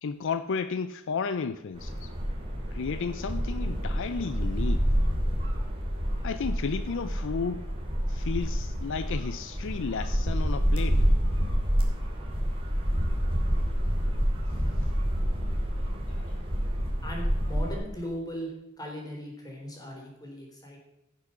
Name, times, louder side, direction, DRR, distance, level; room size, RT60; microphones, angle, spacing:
voice 1, 0.0-2.1 2.7-4.8 6.2-7.7 8.1-11.0 16.1-16.4, left 5 dB, 60° left, 12 dB, 0.5 m, -33 dB
sound 1, 1.7-17.7, equal, 25° right, 2.6 m, -28 dB
voice 2, 17.0-18.5 18.8-20.8, equal, 20° left, -1 dB, 3.6 m, -38 dB
16.0 x 6.3 x 5.7 m, 0.91 s
head